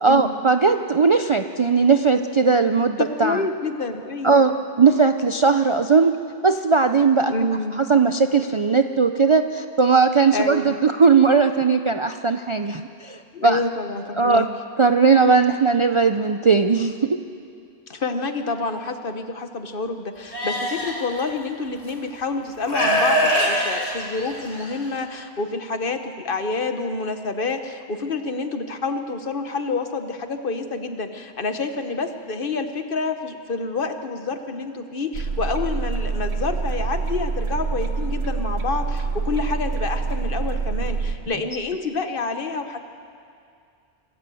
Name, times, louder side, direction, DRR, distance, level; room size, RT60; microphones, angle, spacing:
voice 1, 0.0-3.4 4.2-4.5 4.8-6.1 6.4-7.3 7.9-13.6 14.2-14.5 14.8-17.1, right 5 dB, 40° right, 7 dB, 0.4 m, -18 dB
voice 2, 3.0-4.4 7.3-7.8 10.3-10.9 13.3-14.5 17.9-42.8, left 3 dB, 50° left, 7 dB, 1.3 m, -28 dB
Livestock farm animals working animals, 20.3-20.9 21.9-22.0 22.6-24.7, equal, 75° left, 3.4 m, -22 dB
sound 1, 35.1-41.1, right 4 dB, 70° right, 1.6 m, -26 dB
26.0 x 13.5 x 7.7 m, 2.4 s
omnidirectional pair, 1.2 m